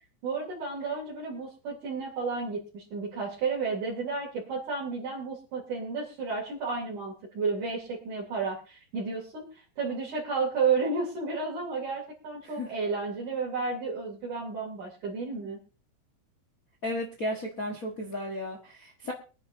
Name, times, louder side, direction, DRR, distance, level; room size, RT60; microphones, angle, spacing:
voice 1, 0.2-15.6, right 4 dB, 60° right, -5 dB, 4.1 m, -32 dB
voice 2, 16.8-19.1, left 1 dB, 75° left, 1 dB, 0.7 m, -34 dB
24.0 x 9.8 x 2.7 m, 0.35 s
omnidirectional pair, 4.1 m